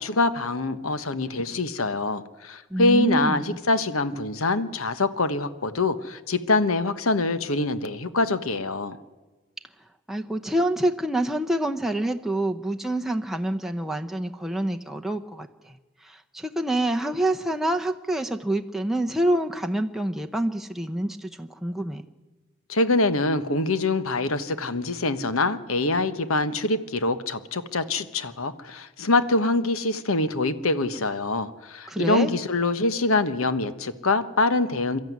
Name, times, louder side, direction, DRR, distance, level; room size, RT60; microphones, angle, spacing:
voice 1, 0.0-9.0 22.7-35.0, left 2 dB, 80° left, 12 dB, 1.2 m, -24 dB
voice 2, 2.7-3.6 10.1-15.8 16.0-22.0 31.9-32.3, right 1 dB, ahead, 4 dB, 0.7 m, -27 dB
23.5 x 13.0 x 9.5 m, 1.2 s
head